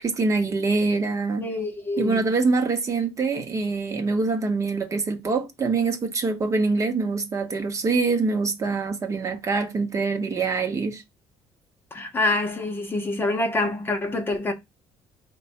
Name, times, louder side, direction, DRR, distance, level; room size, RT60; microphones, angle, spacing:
voice 1, 0.0-1.4 2.0-11.0, right 4 dB, 30° right, 0.8 m, -24 dB
voice 2, 1.4-2.3 11.9-14.5, left 2 dB, 20° left, 0.8 m, -26 dB
4.6 x 2.2 x 4.1 m
cardioid pair, 150°, 11 cm